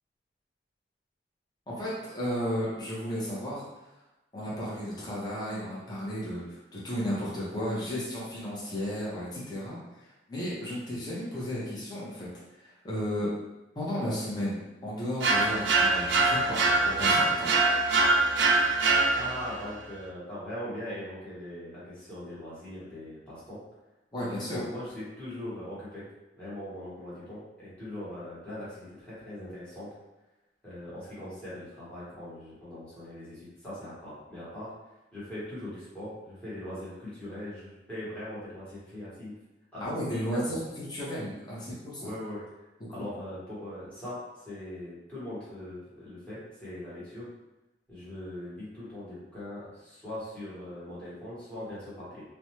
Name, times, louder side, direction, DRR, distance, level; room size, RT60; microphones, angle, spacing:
voice 1, 1.7-3.6 4.3-12.3 12.6-13.3 13.7-17.5 24.1-24.6 39.8-42.0 43.0-43.1, equal, 25° left, -8 dB, 0.7 m, -34 dB
sound 1, 15.2-19.6, right 3 dB, 85° right, 0.4 m, -24 dB
voice 2, 19.2-23.6 24.1-26.0 26.4-29.9 30.6-34.7 35.1-39.3 39.7-40.4 42.0-42.4 42.9-47.3 47.9-52.2, left 1 dB, 10° left, -11 dB, 1.2 m, -40 dB
2.5 x 2.1 x 3.0 m, 1.0 s
head